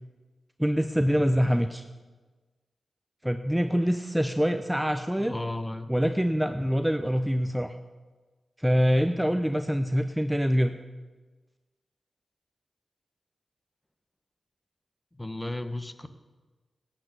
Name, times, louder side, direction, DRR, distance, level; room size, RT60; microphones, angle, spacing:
voice 1, 0.6-1.8 3.2-5.3 5.9-7.8 8.6-10.8, equal, 5° right, 8 dB, 0.8 m, -25 dB
voice 2, 5.2-5.9 15.1-16.1, left 1 dB, 20° left, 9 dB, 1.2 m, -34 dB
12.0 x 9.0 x 8.2 m, 1.3 s
cardioid pair, 45°, 0 cm